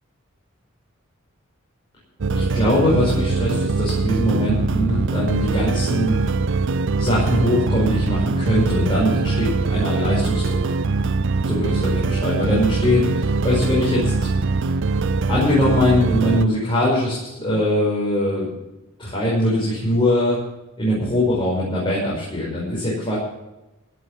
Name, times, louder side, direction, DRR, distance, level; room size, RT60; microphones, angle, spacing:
sound 1, 2.2-16.5, right 3 dB, 60° right, 0.6 m, -22 dB
voice 1, 2.3-6.2 7.0-10.8 11.4-14.3 15.2-18.5 19.0-20.4 20.8-23.2, left 1 dB, 25° left, -6 dB, 5.5 m, -21 dB
16.5 x 8.5 x 7.4 m, 1.0 s
head